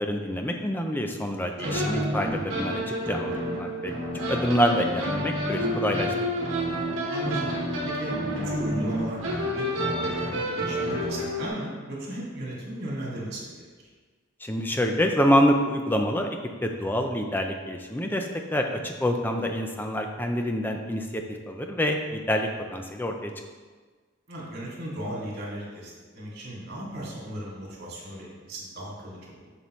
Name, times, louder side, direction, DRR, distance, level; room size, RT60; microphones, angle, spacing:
voice 1, 0.0-2.8 3.1-3.9 4.3-6.1 14.4-16.3 16.6-23.3, equal, 10° left, 3 dB, 0.5 m, -26 dB
sound 1, 1.6-11.5, equal, 65° right, 1.3 m, -29 dB
voice 2, 7.1-7.5 7.8-9.2 9.6-13.6 24.3-29.5, right 1 dB, 50° right, -5 dB, 2.3 m, -36 dB
7.0 x 6.9 x 3.1 m, 1.4 s
head